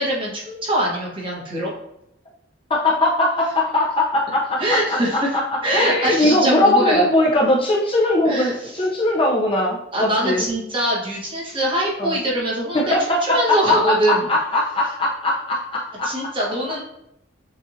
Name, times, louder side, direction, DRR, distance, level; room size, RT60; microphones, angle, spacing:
voice 1, 0.0-1.7 4.6-7.1 8.2-8.7 9.9-14.3 16.0-16.8, right 1 dB, 30° right, -4 dB, 1.2 m, -23 dB
voice 2, 2.7-5.4 5.7-10.4 12.0-12.2 12.7-13.6 13.9-16.1, left 1 dB, 30° left, -3 dB, 0.7 m, -20 dB
7.1 x 2.6 x 2.7 m, 0.81 s
head